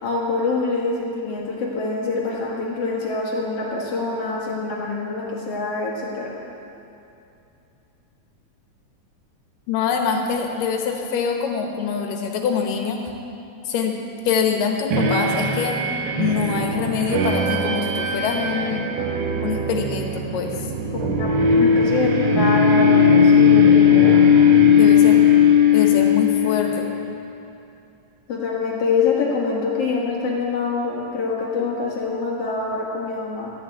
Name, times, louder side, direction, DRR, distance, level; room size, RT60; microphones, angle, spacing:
voice 1, 0.0-6.3 20.9-24.4 28.3-33.5, left 4 dB, 50° left, -3 dB, 2.4 m, -25 dB
voice 2, 9.7-13.0 13.7-14.0 14.3-15.8 16.2-18.9 19.4-20.7 24.7-25.2 25.7-26.9, left 6 dB, 80° left, 3 dB, 2.7 m, -24 dB
sound 1, 14.9-27.0, left 6 dB, 85° right, 2.8 m, -17 dB
sound 2, 17.1-25.9, right 6 dB, 70° right, 2.2 m, -30 dB
13.0 x 7.1 x 8.7 m, 2.7 s
omnidirectional pair, 3.9 m